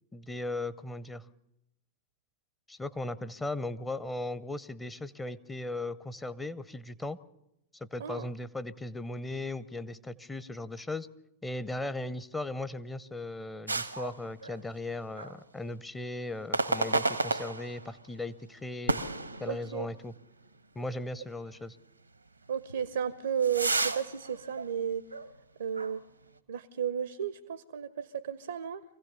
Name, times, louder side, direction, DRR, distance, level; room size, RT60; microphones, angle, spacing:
voice 1, 0.1-1.2 2.7-7.2 7.8-11.1 11.4-19.0 19.4-20.1 20.8-21.8, left 2 dB, 10° left, 15 dB, 0.7 m, -37 dB
sound 1, 13.7-14.9 15.2-15.4 16.5-18.0 18.9-20.0 20.5-20.6 21.3-21.4 22.7-25.4 25.7-25.9, right 3 dB, 90° right, 1.0 m, -32 dB
voice 2, 19.5-19.9 22.5-25.0 25.6-26.0 26.5-28.8, right 8 dB, 70° right, 15 dB, 0.6 m, -33 dB
24.5 x 16.0 x 6.8 m, 0.86 s
figure-of-eight pair, 95°, 0 cm